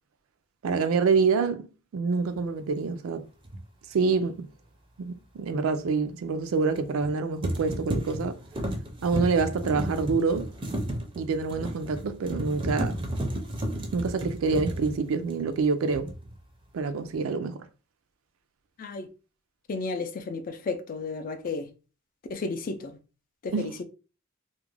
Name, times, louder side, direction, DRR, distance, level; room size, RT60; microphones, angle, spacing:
voice 1, 0.6-1.7 1.9-3.3 3.9-4.5 5.0-8.4 9.0-10.5 11.2-13.0 13.9-16.1 16.7-17.7 23.5-23.7, right 4 dB, 85° right, 0.4 m, -26 dB
sound 1, 3.4-3.6 6.8-7.1 7.4-15.6 15.9-16.4, right 1 dB, 25° right, 0.5 m, -33 dB
voice 2, 19.7-21.7 22.3-23.0 23.4-23.8, left 3 dB, 45° left, 0.4 m, -33 dB
2.3 x 2.1 x 3.1 m
head